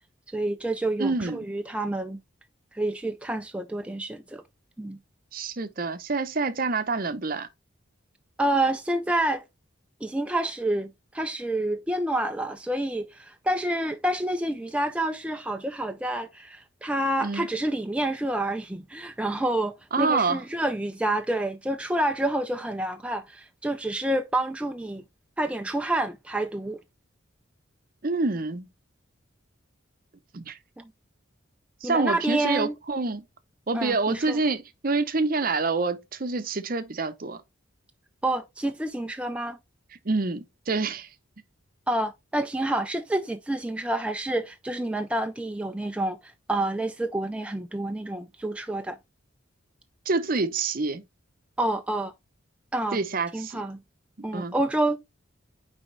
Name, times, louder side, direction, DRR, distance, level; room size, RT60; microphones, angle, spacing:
voice 1, 0.3-2.2 2.7-4.4 4.8-5.0 8.4-9.4 10.0-25.0 25.4-26.8 30.8-30.9 31.8-32.7 33.7-34.4 38.2-39.6 41.9-49.0 51.6-52.1 52.7-53.0 53.3-53.8 54.2-55.0, right 1 dB, 5° right, 0.3 m, -28 dB
voice 2, 1.0-1.4 5.3-7.5 17.2-17.5 19.9-20.4 28.0-28.7 30.3-30.6 31.8-33.3 33.7-37.4 40.1-41.1 50.1-51.0 52.9-53.6 54.3-54.5, right 3 dB, 45° right, 0.7 m, -27 dB
9.4 x 3.5 x 3.2 m
head